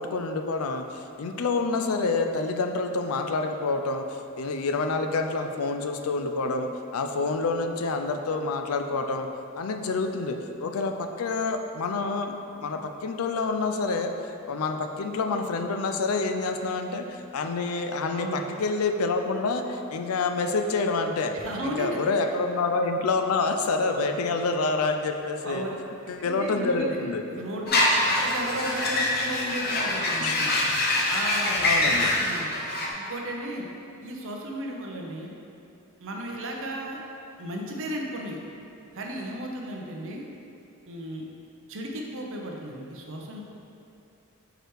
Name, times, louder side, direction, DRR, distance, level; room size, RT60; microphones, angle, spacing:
voice 1, 0.0-9.3 9.5-21.3 21.6-25.7 26.1-27.2 30.2-30.4 31.6-32.1, left 3 dB, 75° left, 5 dB, 0.4 m, -28 dB
voice 2, 18.1-18.4 21.4-22.0 25.4-25.8 26.2-27.0 27.3-33.7 34.0-35.3 36.0-37.0 37.4-38.4 38.9-40.3 40.9-41.2 41.7-43.4, right 1 dB, 65° right, 0 dB, 0.8 m, -35 dB
sound 1, 27.7-32.9, left 1 dB, 45° left, 0.8 m, -24 dB
4.9 x 4.6 x 4.7 m, 2.7 s
head